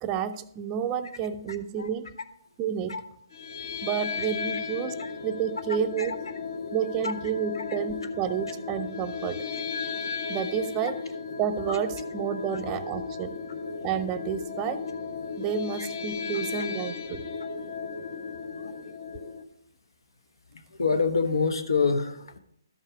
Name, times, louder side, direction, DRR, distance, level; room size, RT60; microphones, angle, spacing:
voice 1, 0.0-2.2 2.6-3.0 3.8-6.2 6.7-9.4 10.3-11.0 11.4-13.4 13.8-14.9 15.4-17.3, right 8 dB, 20° right, 10 dB, 0.4 m, -30 dB
sound 1, 3.3-19.4, left 5 dB, 60° left, 1.3 m, -35 dB
voice 2, 20.5-22.4, left 4 dB, 85° left, 9 dB, 1.2 m, -27 dB
12.5 x 5.4 x 4.9 m, 0.73 s
hypercardioid pair, 155°, 2 cm